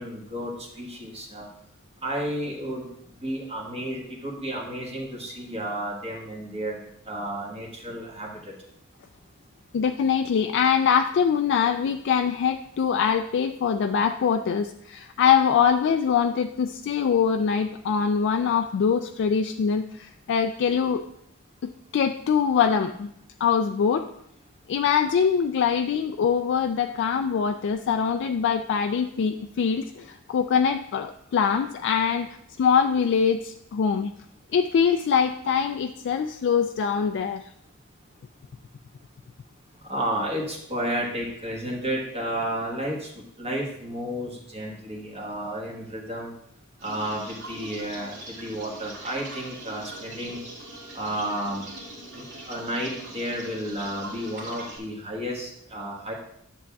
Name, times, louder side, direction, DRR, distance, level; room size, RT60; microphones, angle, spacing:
voice 1, 0.0-1.5 2.0-2.9 3.2-6.8 7.1-8.5 39.8-43.1 43.4-46.3 46.8-50.4 50.9-51.6 52.1-56.1, right 1 dB, 25° right, -3 dB, 1.3 m, -32 dB
voice 2, 9.7-21.0 21.6-23.1 23.4-24.1 24.7-32.3 32.6-34.1 34.5-37.4, left 7 dB, 55° left, 6 dB, 0.3 m, -23 dB
sound 1, 46.8-54.8, right 2 dB, 60° right, 1.9 m, -42 dB
sound 2, 49.8-54.7, right 2 dB, 85° right, 3.2 m, -54 dB
10.0 x 7.0 x 2.3 m, 0.73 s
head